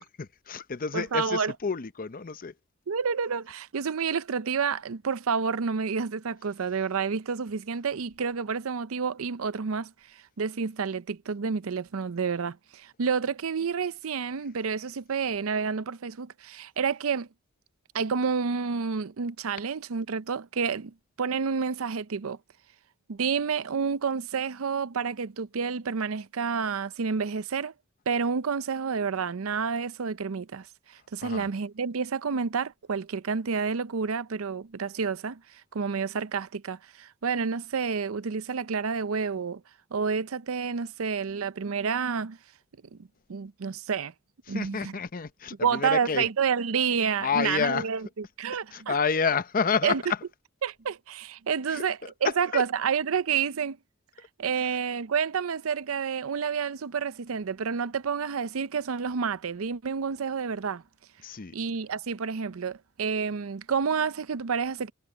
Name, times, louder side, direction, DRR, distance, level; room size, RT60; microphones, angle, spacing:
voice 1, 0.0-2.5 31.2-31.5 44.5-46.3 47.2-47.9 48.7-50.2 51.7-52.6 54.6-54.8 61.2-61.5, left 5 dB, 40° left, 0.7 m, -29 dB
voice 2, 0.9-1.5 2.9-17.3 17.9-22.4 23.1-27.7 28.1-30.7 31.1-39.6 39.9-42.4 43.3-44.1 44.5-44.9 45.6-48.0 48.4-48.9 49.8-50.0 50.6-53.8 54.4-60.8 61.5-64.9, right 6 dB, 75° right, 0.6 m, -29 dB
head